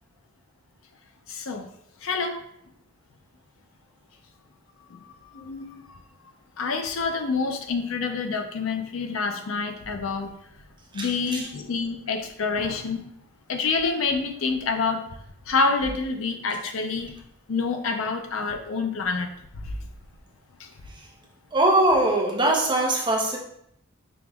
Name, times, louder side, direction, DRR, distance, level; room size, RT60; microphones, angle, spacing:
voice 1, 1.3-1.6 2.0-2.4 4.9-5.0 5.3-5.7 6.6-10.3 10.9-13.0 13.5-15.0 15.5-17.1 17.5-19.3, left 4 dB, 70° left, 5 dB, 0.5 m, -27 dB
voice 2, 11.0-11.4 21.5-23.4, right 1 dB, 20° right, -1 dB, 0.6 m, -22 dB
5.1 x 2.9 x 2.3 m, 0.76 s
head